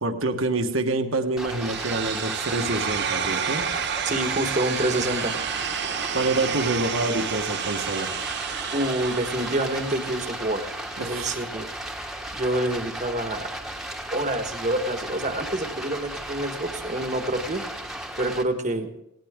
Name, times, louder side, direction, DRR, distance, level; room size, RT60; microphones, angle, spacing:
voice 1, 0.0-3.7 6.1-8.1 11.0-11.4, right 2 dB, 70° right, 6 dB, 1.4 m, -27 dB
Stream, 1.4-18.4, right 1 dB, ahead, 1.3 m, -35 dB
sound 1, 1.6-11.6, right 8 dB, 50° right, 0.8 m, -31 dB
voice 2, 4.0-5.4 8.7-10.7 11.1-11.7 12.3-13.5 14.1-17.6 18.2-18.9, right 1 dB, 35° right, 7 dB, 1.3 m, -27 dB
18.5 x 17.5 x 3.7 m, 0.84 s
head